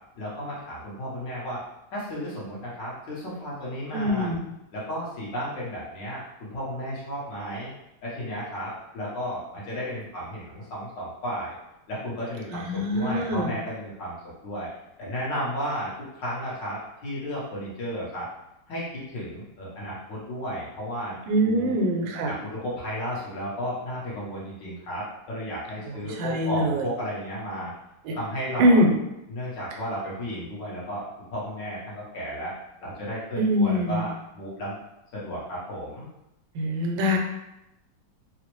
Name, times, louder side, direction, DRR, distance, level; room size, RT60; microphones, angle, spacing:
voice 1, 0.1-1.6 1.9-4.3 4.7-7.7 8.0-11.6 11.9-14.1 14.4-14.7 15.0-18.3 18.7-21.2 21.4-21.7 22.2-27.7 28.1-28.8 29.3-32.5 32.8-34.8 35.1-36.1, equal, 70° left, -7 dB, 1.8 m, -33 dB
voice 2, 3.9-4.4 12.5-13.5 21.3-22.3 25.9-26.9 28.1-28.2 28.6-28.9 33.4-34.1 36.5-37.2, equal, 85° right, 2 dB, 1.3 m, -23 dB
4.0 x 2.0 x 3.0 m, 0.88 s
omnidirectional pair, 2.0 m